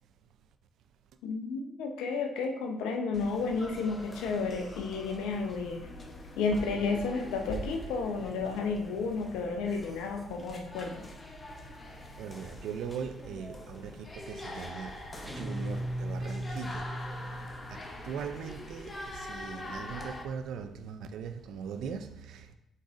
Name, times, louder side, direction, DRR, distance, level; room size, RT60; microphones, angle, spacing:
voice 1, 1.2-5.9 6.4-11.0, left 4 dB, 85° left, 0.6 m, -32 dB
sound 1, 3.1-20.2, left 1 dB, 30° left, 0.8 m, -44 dB
voice 2, 11.9-16.9 17.7-22.5, right 6 dB, 75° right, 0.4 m, -40 dB
sound 2, 15.2-17.8, right 1 dB, ahead, 0.4 m, -37 dB
5.2 x 3.8 x 2.5 m
supercardioid pair, 65°, 0 cm